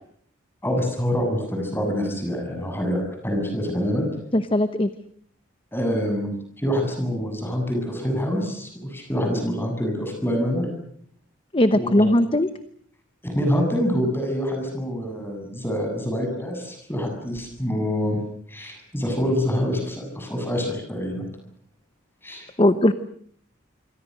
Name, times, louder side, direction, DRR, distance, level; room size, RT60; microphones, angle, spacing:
voice 1, 0.6-4.1 5.7-10.7 11.7-12.1 13.2-18.2 18.5-21.3 22.2-22.5, equal, 10° left, 4 dB, 7.6 m, -26 dB
voice 2, 4.3-4.9 11.5-12.5 22.6-22.9, left 1 dB, 25° left, 11 dB, 0.9 m, -19 dB
27.0 x 24.0 x 6.6 m, 0.63 s
head